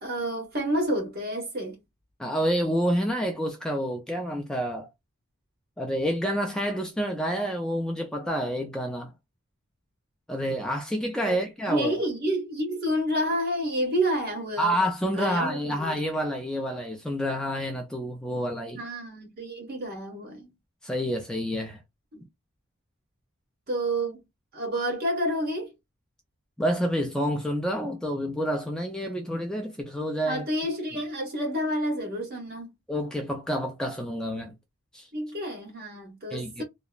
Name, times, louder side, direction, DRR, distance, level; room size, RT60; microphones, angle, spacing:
voice 1, 0.0-1.8 11.2-11.4 11.7-14.7 15.1-16.0 18.8-20.5 22.1-22.2 23.7-24.2 24.5-25.7 30.3-32.7 35.1-36.6, equal, 45° right, 1.3 m, -29 dB
voice 2, 2.2-4.9 5.8-9.1 10.3-12.0 14.6-18.8 20.8-21.8 26.6-30.4 32.9-34.5 34.9-35.1 36.3-36.6, equal, 5° left, 0.4 m, -28 dB
2.9 x 2.0 x 2.3 m
head